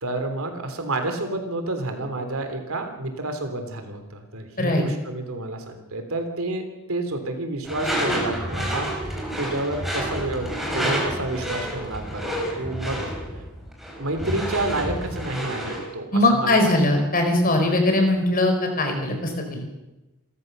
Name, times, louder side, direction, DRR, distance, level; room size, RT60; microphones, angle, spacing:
voice 1, 0.0-8.9 9.4-13.0 14.0-16.7, right 2 dB, 70° right, 6 dB, 3.4 m, -29 dB
Door / Screech, 7.6-15.9, equal, ahead, 5.0 m, -29 dB
voice 2, 16.1-19.6, left 1 dB, 40° left, 4 dB, 4.7 m, -20 dB
28.5 x 14.0 x 6.7 m, 1.0 s
head